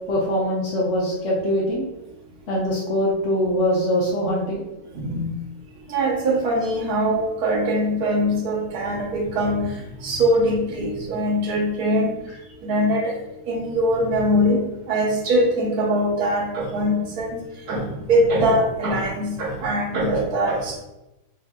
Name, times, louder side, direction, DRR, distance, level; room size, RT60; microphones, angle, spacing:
voice 1, 0.1-1.8 2.5-4.6, equal, 60° left, -4 dB, 0.8 m, -22 dB
voice 2, 4.9-5.3 5.9-9.7 10.0-12.2 12.6-13.1 13.5-14.6 14.9-17.4 17.7-20.9, equal, 65° right, -1 dB, 1.3 m, -22 dB
6.4 x 2.6 x 2.2 m, 0.96 s
omnidirectional pair, 1.9 m